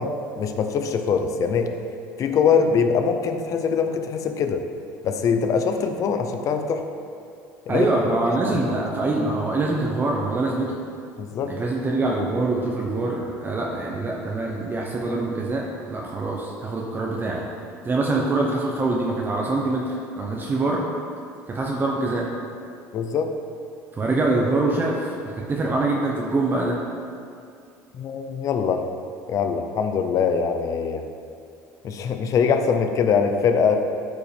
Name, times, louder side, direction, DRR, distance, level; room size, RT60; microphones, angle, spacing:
voice 1, 0.0-1.7 2.2-4.6 5.0-6.8 7.7-7.9 11.2-11.5 22.9-23.3 27.9-28.9 29.3-31.0 31.8-33.8, left 6 dB, 50° left, 6 dB, 0.8 m, -23 dB
voice 2, 7.7-10.8 11.4-17.4 17.8-20.8 21.5-22.3 23.9-26.8, right 2 dB, 30° right, -2 dB, 1.0 m, -24 dB
13.0 x 5.1 x 3.5 m, 2.4 s
supercardioid pair, 95°, 7 cm